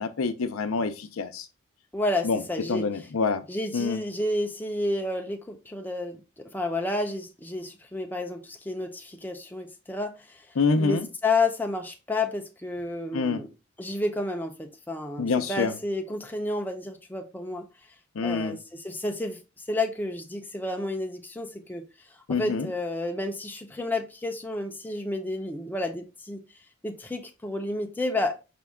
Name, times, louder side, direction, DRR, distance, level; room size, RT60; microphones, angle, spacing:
voice 1, 0.0-1.4 2.2-2.4 2.7-3.4 3.7-4.0 10.6-11.1 13.1-13.4 15.2-15.7 18.2-18.6 22.3-22.7, left 4 dB, 85° left, 0.5 m, -26 dB
voice 2, 1.9-2.9 3.5-10.5 10.8-13.5 13.8-17.7 18.2-19.4 19.7-21.9 22.3-26.4 26.8-28.4, left 2 dB, 10° left, 0.5 m, -31 dB
5.1 x 2.3 x 3.5 m
head